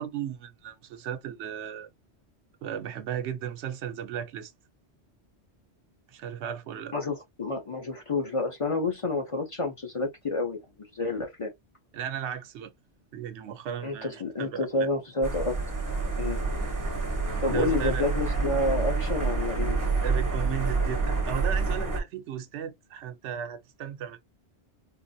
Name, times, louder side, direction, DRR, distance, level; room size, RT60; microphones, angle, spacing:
voice 1, 0.0-1.9 2.6-4.5 6.1-6.9 11.9-12.7 13.1-14.9 17.5-18.0 20.0-24.2, right 9 dB, 90° right, 0.9 m, -35 dB
voice 2, 6.9-10.6 10.9-11.5 13.8-15.6 16.2-16.4 17.4-19.9, left 2 dB, 35° left, 0.6 m, -29 dB
sound 1, 15.2-22.0, right 3 dB, 20° right, 0.6 m, -28 dB
3.8 x 2.0 x 2.6 m
omnidirectional pair, 1.1 m